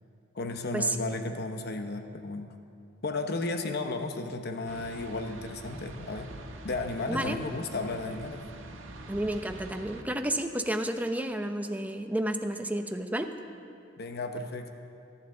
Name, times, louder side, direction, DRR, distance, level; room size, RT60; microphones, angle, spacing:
voice 1, 0.3-2.5 3.0-6.3 6.6-8.5 14.0-14.7, left 2 dB, 55° left, 6 dB, 0.9 m, -34 dB
sound 1, 4.7-10.0, right 2 dB, 80° right, 1.4 m, -45 dB
voice 2, 9.1-13.3, right 1 dB, 10° right, 6 dB, 0.7 m, -31 dB
23.0 x 11.5 x 3.9 m, 2.5 s
head